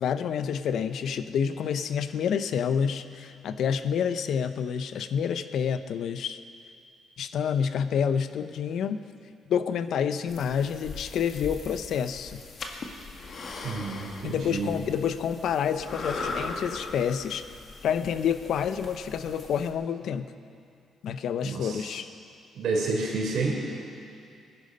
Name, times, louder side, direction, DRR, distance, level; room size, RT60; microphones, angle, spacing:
voice 1, 0.0-6.4 7.2-9.0 9.5-12.4 14.2-17.5 17.8-20.3 21.0-22.1, left 7 dB, 70° left, 11 dB, 0.7 m, -28 dB
sound 1, 10.3-19.7, left 3 dB, 55° left, 1.7 m, -39 dB
voice 2, 13.6-14.7 21.4-21.9 22.5-23.7, right 3 dB, 70° right, -1 dB, 3.9 m, -29 dB
19.5 x 11.0 x 5.4 m, 2.4 s
cardioid pair, 90°, 0 cm